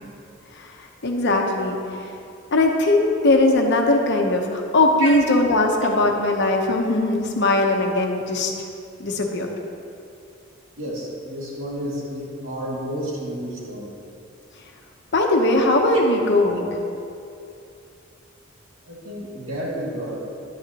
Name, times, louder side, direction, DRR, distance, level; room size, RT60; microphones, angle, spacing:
voice 1, 1.0-1.8 2.5-8.5 9.0-9.5 15.1-16.7, left 2 dB, 60° left, 2 dB, 0.9 m, -19 dB
voice 2, 10.8-13.9 18.9-20.3, equal, 75° right, -5 dB, 2.4 m, -31 dB
11.0 x 9.0 x 3.0 m, 2.6 s
head